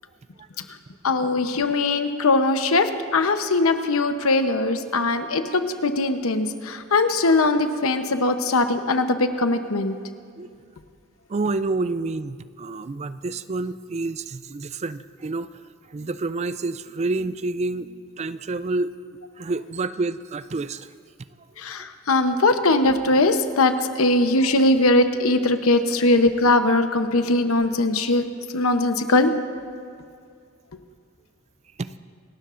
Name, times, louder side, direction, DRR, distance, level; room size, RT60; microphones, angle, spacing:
voice 1, 1.0-9.9 21.6-28.2 28.5-29.3, left 2 dB, 85° left, 8 dB, 0.9 m, -20 dB
voice 2, 11.3-15.5 15.9-18.9 19.4-20.9 31.8-31.9, right 3 dB, 30° right, 14 dB, 0.4 m, -28 dB
27.5 x 12.5 x 2.6 m, 2.3 s
head